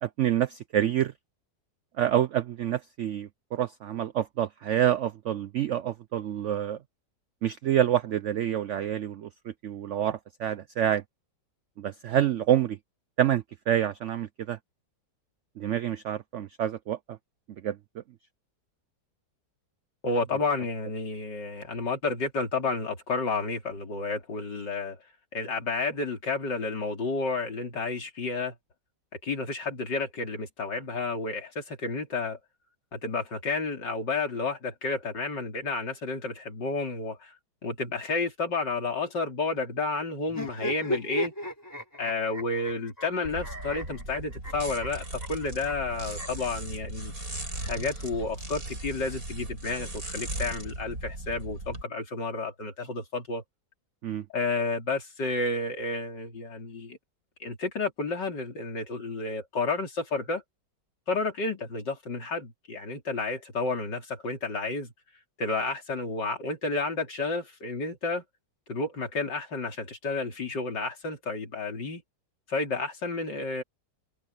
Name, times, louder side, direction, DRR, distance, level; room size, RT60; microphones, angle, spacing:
voice 1, 0.0-1.1 2.0-6.8 7.4-9.3 9.6-11.0 11.8-12.8 13.2-14.6 15.6-17.2 17.6-17.8 54.0-54.3, right 11 dB, 80° right, 0.6 m, -27 dB
voice 2, 20.0-25.0 25.3-28.5 29.2-32.4 32.9-37.3 37.6-41.3 42.0-47.1 47.6-53.4 54.3-57.0 57.4-60.4 61.1-64.9 65.4-68.2 68.7-72.0 72.5-73.6, left 3 dB, 75° left, 4.1 m, -31 dB
sound 1, 40.3-46.5 47.4-48.6, equal, 10° left, 4.6 m, -37 dB
sound 2, 43.2-51.8, right 1 dB, 55° right, 8.0 m, -38 dB
omnidirectional pair, 1.9 m